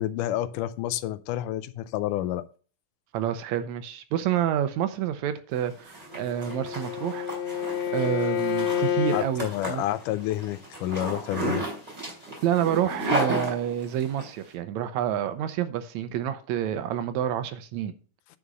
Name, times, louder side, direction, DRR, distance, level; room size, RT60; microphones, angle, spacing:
voice 1, 0.0-2.5 9.1-11.7, left 13 dB, 85° left, 2.2 m, -29 dB
voice 2, 3.1-7.3 7.5-7.6 7.9-9.8 12.4-17.9, right 10 dB, 75° right, 1.9 m, -28 dB
Zipper (clothing), 5.6-14.3, right 1 dB, 10° right, 3.1 m, -33 dB
Bowed string instrument, 6.1-9.3, left 8 dB, 70° left, 1.6 m, -29 dB
9.7 x 5.1 x 5.4 m
omnidirectional pair, 3.6 m